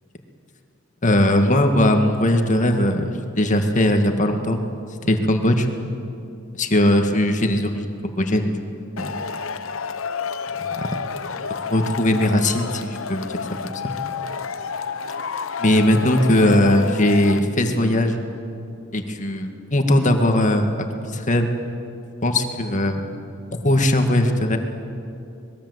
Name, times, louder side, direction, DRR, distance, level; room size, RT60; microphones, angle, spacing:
voice 1, 1.0-4.6 5.0-5.7 6.6-8.6 9.0-9.2 10.7-10.9 11.7-13.3 13.6-13.9 15.6-18.2 18.9-20.9 21.1-21.5 22.2-23.0 23.6-24.6, left 1 dB, 40° left, 5 dB, 2.0 m, -19 dB
Male speech man speaking / Shout / Clapping, 9.0-17.4, left 6 dB, 90° left, 0.9 m, -30 dB
25.5 x 21.0 x 8.1 m, 2.6 s
head